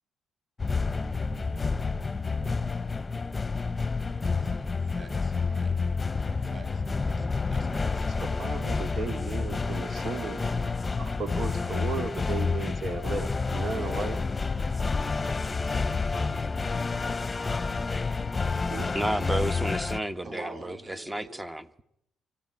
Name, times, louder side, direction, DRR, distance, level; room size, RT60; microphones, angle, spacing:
sound 1, 0.6-20.0, left 4 dB, 25° left, 1.0 m, -29 dB
voice 1, 4.0-5.8 6.4-8.1 20.2-21.5, right 2 dB, 35° right, 7.9 m, -46 dB
voice 2, 8.2-14.2 18.7-18.9, right 4 dB, 55° right, 2.7 m, -35 dB
voice 3, 18.9-21.8, right 1 dB, 15° right, 1.2 m, -32 dB
24.5 x 15.5 x 9.8 m
cardioid pair, 90°, 0 cm